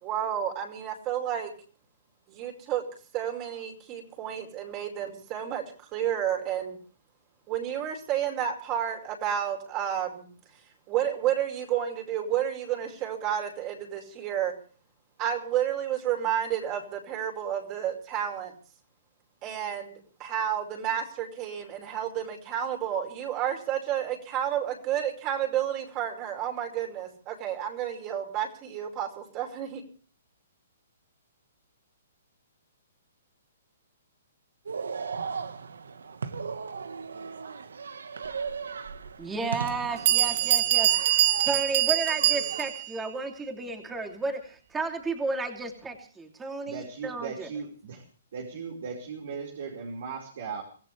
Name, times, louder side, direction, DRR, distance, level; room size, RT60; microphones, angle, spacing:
voice 1, 0.0-1.5 2.3-2.8 3.1-6.8 7.5-10.3 10.9-14.5 15.2-18.5 19.4-19.9 20.2-29.8, right 10 dB, 30° right, 3 dB, 5.0 m, -31 dB
sound 1, 34.7-42.7, right 5 dB, 85° right, 1.4 m, -37 dB
Bell, 38.9-39.0 39.7-39.8 40.1-42.9, right 14 dB, 45° right, 1.7 m, -24 dB
voice 2, 39.2-40.9 41.4-47.5, right 3 dB, 10° right, 3 dB, 3.0 m, -33 dB
voice 3, 46.7-48.0 48.3-50.6, right 5 dB, 65° right, 0 dB, 4.9 m, -37 dB
25.0 x 15.5 x 3.4 m, 0.41 s
hypercardioid pair, 145°, 0 cm